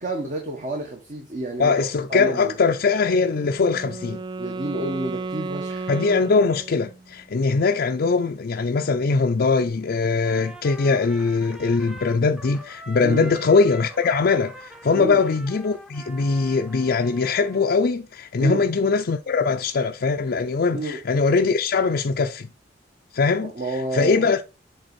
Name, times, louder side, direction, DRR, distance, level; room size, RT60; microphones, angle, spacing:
voice 1, 0.0-2.5 4.4-5.9 13.0-13.3 14.9-15.2 18.4-18.6 20.7-21.0 23.4-24.3, right 2 dB, 45° right, 1.4 m, -30 dB
voice 2, 1.6-4.2 5.9-22.5 23.1-24.4, left 4 dB, 55° left, 0.5 m, -21 dB
Wind instrument woodwind instrument, 3.2-7.2, right 3 dB, 25° right, 0.4 m, -34 dB
Trumpet, 10.2-17.8, equal, 5° right, 0.7 m, -43 dB
7.9 x 3.9 x 4.2 m
head